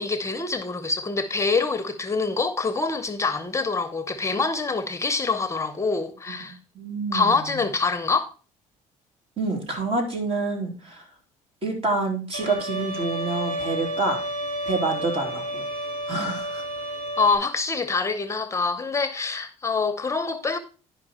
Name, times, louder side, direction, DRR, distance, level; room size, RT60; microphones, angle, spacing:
voice 1, 0.0-6.6 7.1-8.3 17.2-20.6, left 4 dB, 20° left, 0.8 m, -25 dB
voice 2, 6.7-7.6 9.4-11.1 11.6-14.2 14.7-15.6 16.1-16.6, right 3 dB, 45° right, 3.0 m, -27 dB
Bowed string instrument, 12.3-17.4, right 1 dB, 75° right, 4.9 m, -31 dB
11.0 x 5.3 x 4.2 m
cardioid pair, 115°, 14 cm